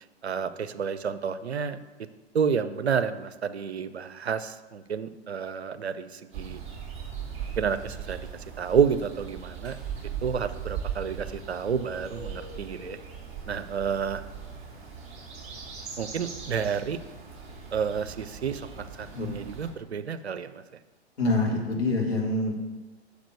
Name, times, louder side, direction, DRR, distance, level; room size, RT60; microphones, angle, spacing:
voice 1, 0.2-1.8 2.3-6.6 7.6-8.3 8.6-9.8 10.2-13.0 13.5-14.2 16.0-17.0 17.7-20.6, right 7 dB, 75° right, 12 dB, 0.6 m, -30 dB
sound 1, 6.3-19.7, right 7 dB, 20° right, 2.8 m, -39 dB
voice 2, 21.2-22.6, left 2 dB, 70° left, -1 dB, 2.1 m, -26 dB
6.6 x 5.1 x 6.8 m, 1.2 s
figure-of-eight pair, 105°, 33 cm